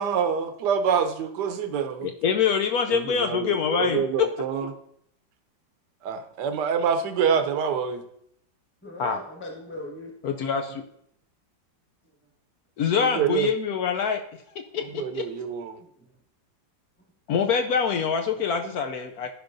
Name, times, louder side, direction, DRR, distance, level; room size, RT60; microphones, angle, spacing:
voice 1, 0.0-2.1 2.9-4.7 6.0-8.0 13.0-13.5 15.0-15.8, right 7 dB, 70° right, 8 dB, 1.2 m, -26 dB
voice 2, 2.0-4.3 9.0-9.2 10.2-10.8 12.8-14.2 14.7-14.8 15.1-15.2 17.3-19.3, left 7 dB, 70° left, 5 dB, 0.9 m, -25 dB
voice 3, 8.8-10.3 14.9-15.0 15.8-16.0 18.3-18.4, left 1 dB, 5° left, -1 dB, 1.2 m, -40 dB
14.0 x 5.2 x 2.6 m, 0.72 s
omnidirectional pair, 2.0 m